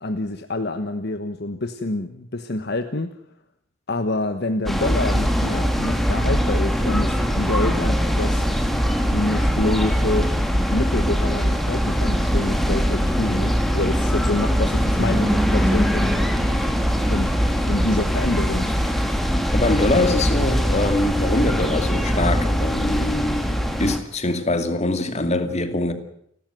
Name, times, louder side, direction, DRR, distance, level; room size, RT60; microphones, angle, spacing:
voice 1, 0.0-3.1 3.9-8.5 9.1-10.3 10.7-16.1 17.1-18.7, left 2 dB, 55° left, 1.3 m, -27 dB
sound 1, 4.7-24.0, equal, ahead, 2.4 m, -21 dB
voice 2, 19.5-25.9, left 2 dB, 35° left, 2.5 m, -23 dB
29.5 x 13.0 x 9.3 m
head